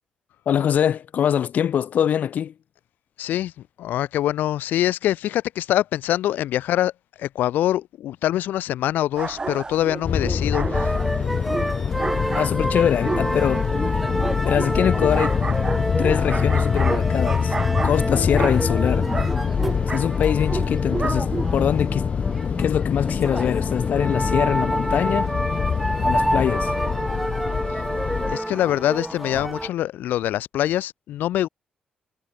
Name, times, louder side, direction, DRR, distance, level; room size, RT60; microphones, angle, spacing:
voice 1, 0.5-2.5 12.3-13.7 14.4-15.4 16.0-17.5 17.8-19.1 19.9-22.1 22.6-25.3 26.0-26.7, left 9 dB, 60° left, 0.5 m, -23 dB
voice 2, 3.2-3.5 3.8-6.9 7.2-10.9 28.3-31.5, left 13 dB, 85° left, 1.7 m, -24 dB
sound 1, 9.2-21.8, right 3 dB, 25° right, 1.5 m, -32 dB
sound 2, 10.0-28.4, left 6 dB, 45° left, 0.9 m, -25 dB
sound 3, 10.7-29.7, right 1 dB, 5° right, 1.9 m, -29 dB
cardioid pair, 100°, 3 cm